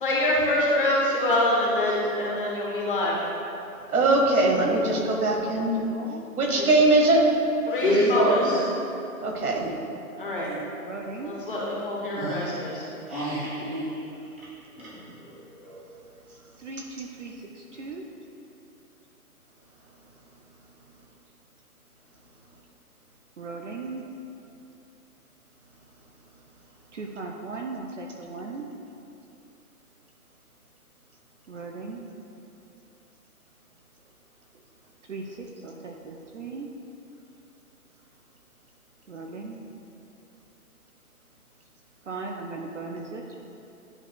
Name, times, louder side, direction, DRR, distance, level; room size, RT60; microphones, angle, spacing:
voice 1, 0.0-3.2 6.5-6.8 7.7-8.5 10.2-10.5 11.2-12.9, left 1 dB, 35° left, -4 dB, 1.1 m, -26 dB
voice 2, 3.9-5.8 6.4-7.3 9.2-9.7 16.8-16.9, right 2 dB, 70° right, 1 dB, 1.4 m, -21 dB
voice 3, 4.6-4.9 5.5-6.3 10.4-11.4 16.6-18.1 23.4-24.0 26.9-28.7 31.5-32.2 35.1-36.7 39.1-39.6 42.1-43.2, right 3 dB, 55° right, 1 dB, 0.6 m, -38 dB
voice 4, 7.7-8.6 9.5-9.6 12.2-12.4 13.1-14.0 14.7-15.8, equal, 10° right, -17 dB, 0.7 m, -26 dB
10.5 x 4.6 x 2.2 m, 2.8 s
hypercardioid pair, 170°, 45 cm